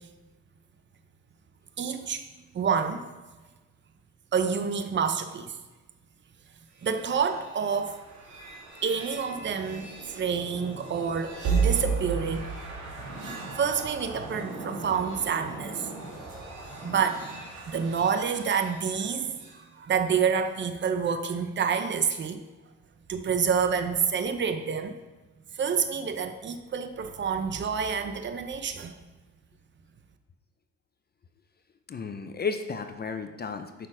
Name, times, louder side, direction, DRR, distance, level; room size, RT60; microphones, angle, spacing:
voice 1, 1.8-2.2 2.5-3.1 4.3-5.6 6.8-8.0 8.8-12.5 13.6-15.9 16.8-17.3 17.7-22.4 23.1-25.0 25.5-29.0, right 6 dB, 40° right, 8 dB, 0.7 m, -28 dB
sound 1, 6.8-19.6, right 5 dB, 80° right, 2.1 m, -35 dB
voice 2, 31.9-33.9, left 5 dB, 30° left, 7 dB, 0.6 m, -33 dB
6.7 x 5.7 x 4.9 m, 1.2 s
cardioid pair, 90°, 30 cm